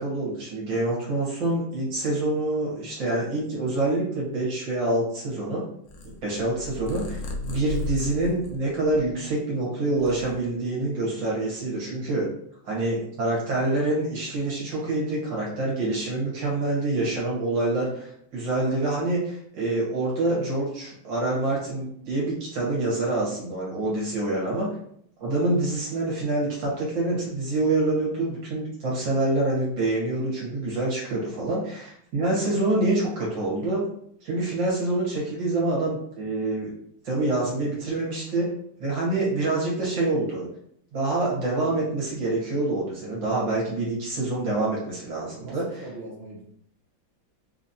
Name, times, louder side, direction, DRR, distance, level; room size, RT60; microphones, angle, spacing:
voice 1, 0.0-5.7 6.2-12.3 12.6-24.7 25.2-33.8 34.2-36.7 37.0-38.5 38.8-40.5 40.9-45.8, right 2 dB, 70° right, -5 dB, 2.0 m, -26 dB
Purr, 5.9-9.4 9.8-10.9, left 2 dB, 70° left, 0.7 m, -36 dB
voice 2, 45.4-46.4, right 2 dB, 45° right, -2 dB, 0.8 m, -41 dB
4.2 x 2.9 x 2.7 m, 0.67 s
omnidirectional pair, 2.1 m